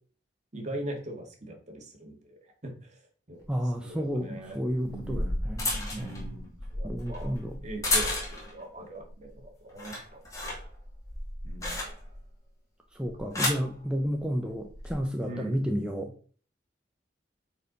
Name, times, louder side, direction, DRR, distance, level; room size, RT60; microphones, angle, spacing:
voice 1, 0.5-3.5 3.8-5.4 5.9-7.3 7.6-10.6 11.4-11.8 15.2-15.6, right 1 dB, 40° right, 1.9 m, -41 dB
sound 1, 3.4-3.5 4.7-8.6 9.0-9.4 9.7-12.3 13.0-13.7 14.6-14.9, left 1 dB, 20° left, 2.5 m, -32 dB
voice 2, 3.5-6.4 6.8-7.6 12.9-16.1, equal, 5° right, 0.7 m, -32 dB
8.9 x 4.6 x 4.0 m
head